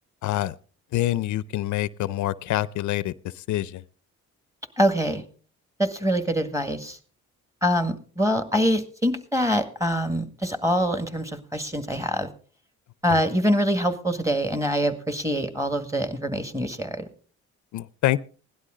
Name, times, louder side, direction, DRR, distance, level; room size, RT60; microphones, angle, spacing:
voice 1, 0.2-0.5 0.9-3.8 13.1-13.2 17.7-18.2, left 14 dB, 75° left, 18 dB, 0.6 m, -26 dB
voice 2, 4.8-5.2 5.8-7.0 7.6-12.3 13.0-17.1, equal, 10° right, 9 dB, 1.9 m, -24 dB
17.0 x 11.5 x 3.8 m, 0.39 s
cardioid pair, 90°, 30 cm